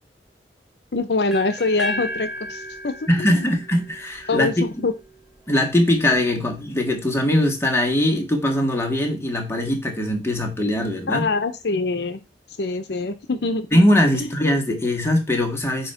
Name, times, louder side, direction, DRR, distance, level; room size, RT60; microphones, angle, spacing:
voice 1, 0.9-3.6 4.3-4.9 11.1-12.2 12.6-13.7 14.1-14.3, left 3 dB, 70° left, 9 dB, 0.7 m, -24 dB
sound 1, 1.3-5.2, equal, ahead, 1.5 m, -34 dB
voice 2, 3.1-4.6 5.5-11.3 13.7-15.9, left 1 dB, 15° left, 2 dB, 1.7 m, -21 dB
8.5 x 2.9 x 5.6 m, 0.26 s
head